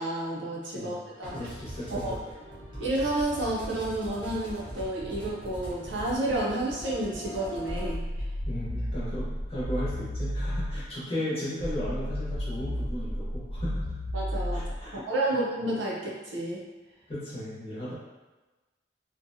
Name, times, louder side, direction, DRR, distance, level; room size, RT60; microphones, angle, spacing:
voice 1, 0.0-1.3 1.9-2.1 2.8-8.0 14.1-14.7 14.9-16.6, right 1 dB, 75° right, -4 dB, 0.6 m, -30 dB
sound 1, 1.2-7.9, equal, 25° right, 0.9 m, -41 dB
voice 2, 1.3-2.1 8.5-14.0 14.5-15.0 17.1-17.9, equal, 30° left, -9 dB, 0.8 m, -35 dB
sound 2, 7.7-10.9 11.6-14.9, equal, 75° left, 0.5 m, -32 dB
2.6 x 2.1 x 2.6 m, 1.2 s
head